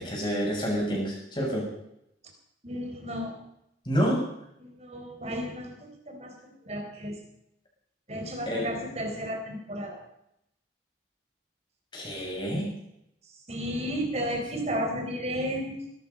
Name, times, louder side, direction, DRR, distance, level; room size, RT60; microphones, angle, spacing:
voice 1, 0.0-1.7 3.9-4.2 8.5-8.7 11.9-12.7, equal, 25° left, -2 dB, 7.0 m, -28 dB
voice 2, 2.6-3.4 4.6-7.2 8.1-10.0 12.2-12.3 13.3-15.9, equal, 35° right, 2 dB, 4.3 m, -33 dB
20.0 x 13.0 x 5.4 m, 0.79 s
head